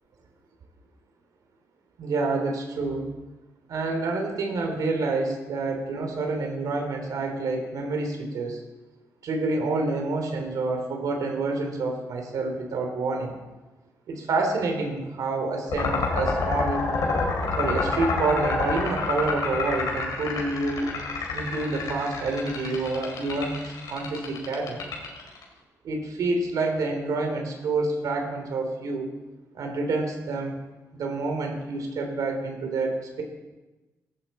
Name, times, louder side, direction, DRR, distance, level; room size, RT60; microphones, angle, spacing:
voice 1, 2.0-3.1 3.7-8.6 9.2-13.3 14.1-16.9 17.6-20.9 21.3-24.8 25.8-29.1 29.5-30.6 30.9-33.2, right 3 dB, 75° right, 3 dB, 3.1 m, -28 dB
sound 1, 15.7-25.4, left 4 dB, 80° left, 4.4 m, -28 dB
17.5 x 14.5 x 4.3 m, 1.1 s
cardioid pair, 105°, 6 cm